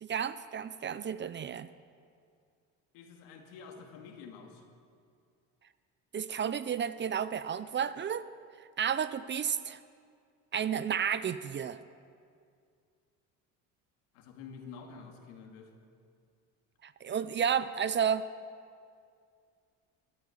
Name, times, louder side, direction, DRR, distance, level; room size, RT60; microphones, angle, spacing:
voice 1, 0.0-1.7 6.1-8.3 8.8-9.8 10.5-11.8 16.8-18.3, right 8 dB, 30° right, 15 dB, 0.5 m, -32 dB
voice 2, 2.9-4.6 14.1-15.7, left 5 dB, 80° left, 3 dB, 2.3 m, -48 dB
16.0 x 11.0 x 7.2 m, 2.3 s
supercardioid pair, 95°, 37 cm